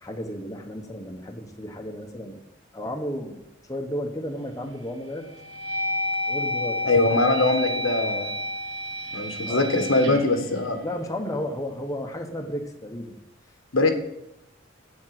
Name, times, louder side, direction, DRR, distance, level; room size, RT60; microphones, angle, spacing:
voice 1, 0.0-2.4 2.7-3.4 3.7-5.3 6.2-7.2 9.5-9.7 10.8-13.2, equal, 15° left, 2 dB, 1.2 m, -33 dB
sound 1, 4.3-4.8 5.3-11.4, left 1 dB, 70° right, 1.4 m, -30 dB
voice 2, 6.8-8.3 9.1-10.8 13.7-13.9, left 2 dB, 90° left, 4 dB, 1.5 m, -22 dB
8.4 x 7.4 x 5.9 m, 0.85 s
head